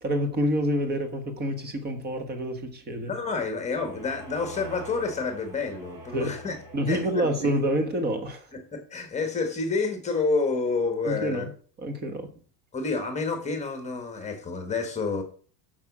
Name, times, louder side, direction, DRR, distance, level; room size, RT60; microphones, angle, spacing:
voice 1, 0.0-3.1 6.1-6.4 6.7-8.5 11.0-11.5 11.8-12.3, equal, 20° right, 1.3 m, -27 dB
voice 2, 3.0-6.5 6.9-7.5 8.5-11.5 12.7-15.2, left 4 dB, 15° left, 1.5 m, -29 dB
sound 1, 3.2-7.8, equal, 45° right, 5.6 m, -45 dB
8.9 x 6.4 x 6.1 m
cardioid pair, 170°, 49 cm